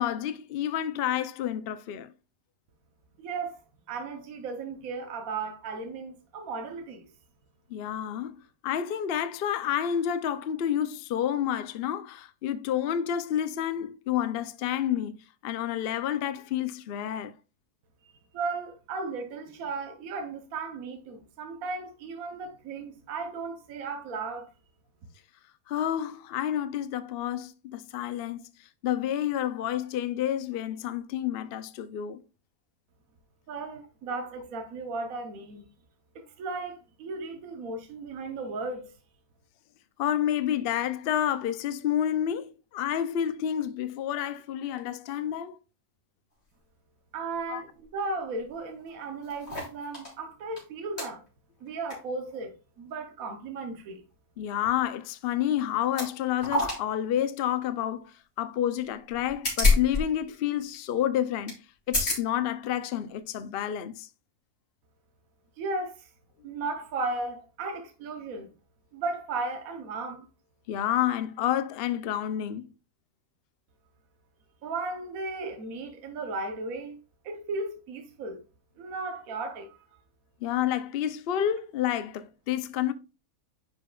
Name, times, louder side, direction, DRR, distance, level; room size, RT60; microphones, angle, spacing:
voice 1, 0.0-2.1 7.7-15.2 15.4-17.3 25.7-32.2 40.0-45.6 47.5-47.6 54.4-61.6 61.9-64.1 70.7-72.7 80.4-82.9, left 10 dB, 70° left, 0.5 m, -29 dB
voice 2, 3.2-3.6 3.9-7.1 18.0-24.5 33.5-35.6 36.1-38.9 47.1-51.2 51.6-54.0 65.6-66.1 66.4-68.5 68.9-70.3 74.6-77.0 77.2-78.4 78.8-79.9, right 3 dB, 70° right, 1.3 m, -35 dB
sound 1, 48.5-48.6 48.8-50.1 50.6-50.7 51.0-51.1 51.7-52.0 52.3-52.4 55.1-55.3 55.8-56.1 56.4-56.8 57.2-57.3 59.1-60.0 60.3-60.4 60.7-60.9 61.5-61.6 61.9-62.2 62.9-63.0, left 3 dB, 45° left, 3.9 m, -27 dB
10.0 x 5.4 x 2.3 m
omnidirectional pair, 1.6 m